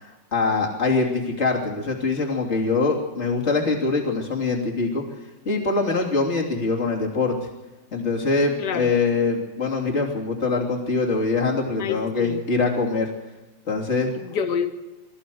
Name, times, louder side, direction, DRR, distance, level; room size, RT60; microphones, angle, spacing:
voice 1, 0.0-5.0 5.5-7.5 7.9-13.1 13.7-14.1, left 3 dB, 35° left, 0 dB, 3.5 m, -23 dB
voice 2, 8.6-8.9 11.8-12.4 14.2-14.7, left 7 dB, 65° left, 8 dB, 1.9 m, -27 dB
24.5 x 15.0 x 7.9 m, 1.1 s
omnidirectional pair, 2.0 m